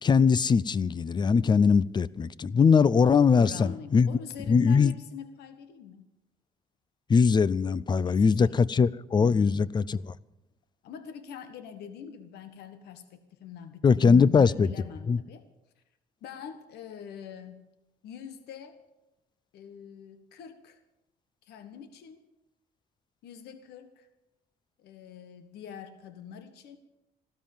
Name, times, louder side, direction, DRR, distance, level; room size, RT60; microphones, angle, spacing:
voice 1, 0.0-4.1 4.5-4.9 7.1-10.1 13.8-14.7 15.1-15.2, left 5 dB, 25° left, 0.5 m, -21 dB
voice 2, 3.4-6.0 8.0-8.7 9.3-9.6 10.8-15.5 16.2-17.6 18.0-18.8 19.5-20.8 21.4-22.2 23.2-24.1 24.8-26.8, left 8 dB, 75° left, 1.4 m, -44 dB
15.5 x 13.0 x 7.2 m
cardioid pair, 110°, 17 cm